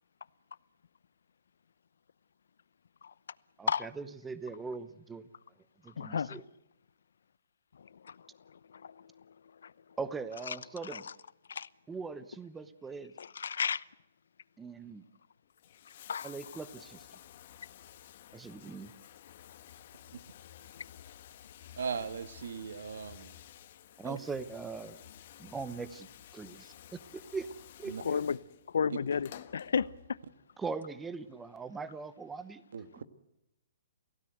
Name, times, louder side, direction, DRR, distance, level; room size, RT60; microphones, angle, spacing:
voice 1, 3.6-5.3 5.8-6.4 10.0-11.1 11.9-13.1 14.6-15.0 16.2-17.1 18.3-18.9 24.0-25.0 25.4-26.1 26.3-27.5 27.8-28.2 30.6-32.6, right 4 dB, 5° right, 0.9 m, -41 dB
voice 2, 6.0-6.4 8.0-8.1 8.8-8.9 9.6-9.7 10.8-11.0 11.5-11.7 13.2-13.8 16.1-16.3 28.0-28.4 28.7-29.9, left 6 dB, 80° left, 0.8 m, -32 dB
Bathtub (filling or washing), 15.4-30.4 31.5-31.6, left 11 dB, 45° left, 1.3 m, -53 dB
voice 3, 21.8-23.3 24.0-24.2 27.9-28.0 28.9-29.0 32.7-33.0, right 6 dB, 75° right, 1.8 m, -38 dB
28.0 x 16.5 x 8.0 m
hypercardioid pair, 165°, 0 cm